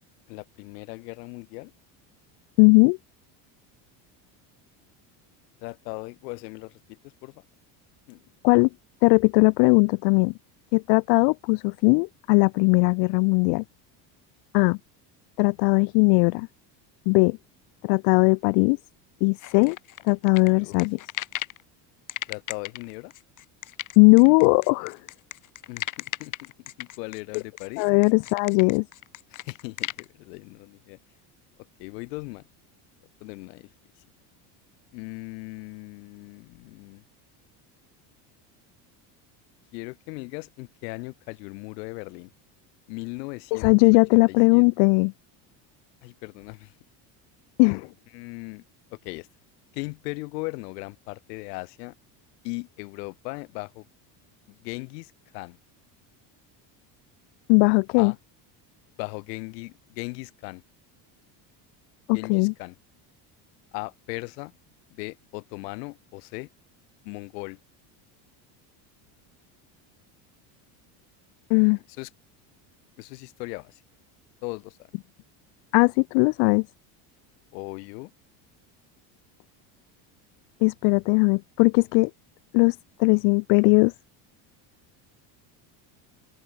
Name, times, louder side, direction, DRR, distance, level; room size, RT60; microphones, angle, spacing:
voice 1, 0.3-1.7 5.6-7.4 8.1-8.2 20.5-20.8 22.3-23.1 25.7-25.9 26.2-27.9 29.3-31.0 31.8-32.4 33.2-33.7 34.9-37.0 39.7-42.3 42.9-43.7 44.1-44.6 46.0-46.7 48.1-48.6 48.9-49.3 49.7-51.9 52.4-53.8 54.5-55.6 58.0-58.2 59.0-60.6 62.1-62.7 63.7-64.5 64.9-66.5 67.0-67.6 72.0-72.1 73.0-73.8 74.4-74.8 77.5-78.1, left 27 dB, 90° left, 3.1 m, -38 dB
voice 2, 2.6-3.0 8.4-8.7 9.0-10.3 10.7-13.6 14.5-14.8 15.4-16.5 17.1-17.4 17.8-18.8 19.2-19.8 20.1-21.0 24.0-25.0 27.8-28.8 43.5-45.1 47.6-47.9 57.5-58.1 62.1-62.5 71.5-71.8 75.7-76.6 80.6-82.1 82.5-82.7 83.0-83.9, left 40 dB or more, 70° left, 0.5 m, -19 dB
sound 1, 19.4-21.6 22.1-30.0, left 13 dB, 40° left, 1.1 m, -36 dB
open air
cardioid pair, 120°, 47 cm